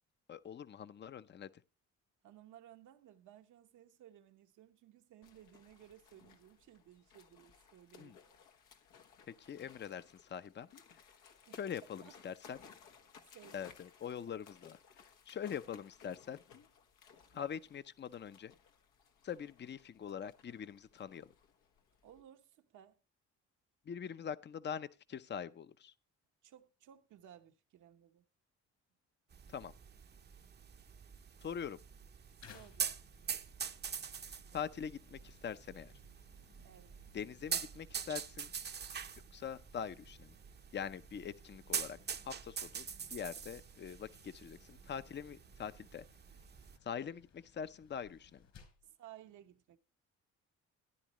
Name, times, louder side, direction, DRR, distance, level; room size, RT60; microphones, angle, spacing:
voice 1, 0.3-1.5 8.0-8.2 9.4-10.7 11.5-12.6 13.5-14.8 15.3-16.4 17.3-18.5 19.2-21.3 23.9-25.9 29.5-29.7 31.4-31.8 34.5-35.9 37.1-38.5 39.3-40.4 40.7-42.0 42.2-46.1 46.8-48.4, left 8 dB, 35° left, 0.6 m, -43 dB
voice 2, 2.2-8.4 11.5-11.6 12.0-12.1 13.3-13.7 22.0-23.0 26.4-28.2 32.4-33.4 36.6-37.0 45.6-45.7 46.3-46.4 48.8-49.8, right 11 dB, 75° right, 1.0 m, -59 dB
sound 1, 5.2-22.2, left 6 dB, 90° left, 1.3 m, -61 dB
sound 2, 29.3-46.8, right 7 dB, 35° right, 0.7 m, -45 dB
sound 3, 32.4-48.9, left 6 dB, 65° left, 4.1 m, -64 dB
14.0 x 10.0 x 3.0 m
cardioid pair, 90°, 30 cm